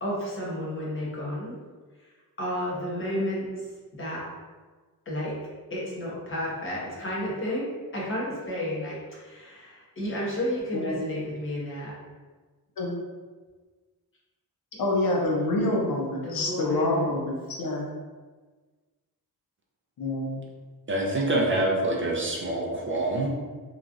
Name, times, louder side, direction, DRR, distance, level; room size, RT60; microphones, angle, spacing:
voice 1, 0.0-1.6 2.0-2.1 2.4-4.2 5.1-5.3 5.7-7.7 7.9-11.9 16.2-17.1, left 1 dB, 35° left, -6 dB, 0.9 m, -32 dB
voice 2, 14.8-17.9 20.0-20.4, left 2 dB, 70° left, -2 dB, 0.7 m, -27 dB
voice 3, 20.9-23.3, right 1 dB, 35° right, -2 dB, 0.4 m, -26 dB
3.0 x 2.4 x 2.5 m, 1.4 s
wide cardioid pair, 110°, 36 cm